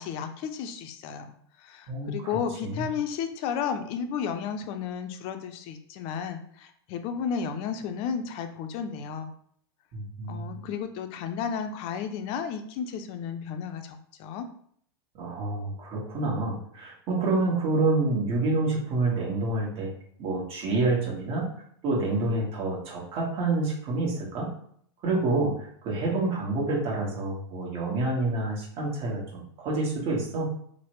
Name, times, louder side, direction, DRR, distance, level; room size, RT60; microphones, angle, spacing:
voice 1, 0.0-1.3 1.6-9.3 10.3-14.5, left 7 dB, 45° left, 8 dB, 0.4 m, -33 dB
voice 2, 9.9-10.6 15.2-19.9 20.2-21.5 21.8-24.5 25.0-30.5, right 2 dB, 45° right, -3 dB, 1.3 m, -28 dB
3.2 x 2.1 x 3.0 m, 0.64 s
hypercardioid pair, 115°, 14 cm